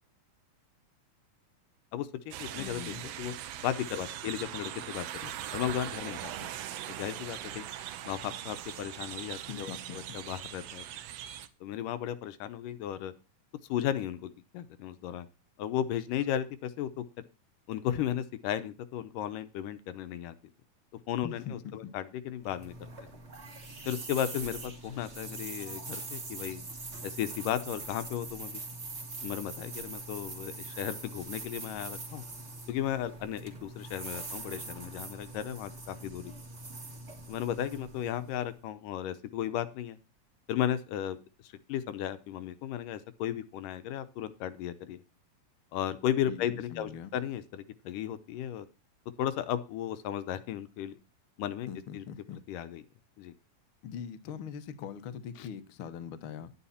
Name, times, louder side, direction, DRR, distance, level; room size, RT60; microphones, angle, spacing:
voice 1, 1.9-3.3 3.6-6.5 6.9-7.7 8.0-10.8 11.6-13.1 13.7-15.3 15.6-17.0 17.7-20.4 21.1-22.7 23.9-26.6 27.0-28.6 29.2-32.3 32.7-36.3 37.3-40.0 40.5-41.2 41.4-45.0 45.7-48.7 49.2-51.0 51.4-51.7 51.9-52.0 52.5-52.8 53.2-53.3 55.4-55.5, left 11 dB, 80° left, 2.4 m, -35 dB
sound 1, 2.3-11.5, right 11 dB, 70° right, 1.6 m, -41 dB
voice 2, 2.6-3.0 9.5-10.2 21.2-22.0 46.3-47.1 51.7-52.4 53.8-56.5, left 8 dB, 60° left, 1.4 m, -42 dB
sound 2, 22.4-38.6, right 3 dB, 25° right, 1.7 m, -43 dB
11.0 x 9.8 x 4.2 m
omnidirectional pair, 3.9 m